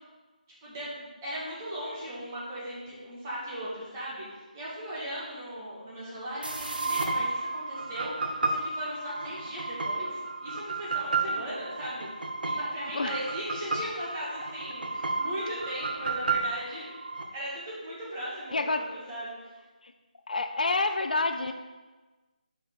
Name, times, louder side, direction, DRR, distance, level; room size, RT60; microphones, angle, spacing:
voice 1, 0.6-12.1 12.4-16.9 17.3-19.4, equal, 20° right, -8 dB, 1.8 m, -38 dB
sound 1, 6.4-17.2, right 3 dB, 90° right, 0.9 m, -32 dB
voice 2, 18.5-18.8 19.8-19.9 20.3-21.5, left 3 dB, 65° left, 7 dB, 0.6 m, -28 dB
6.3 x 5.4 x 3.8 m, 1.2 s
figure-of-eight pair, 170°, 5 cm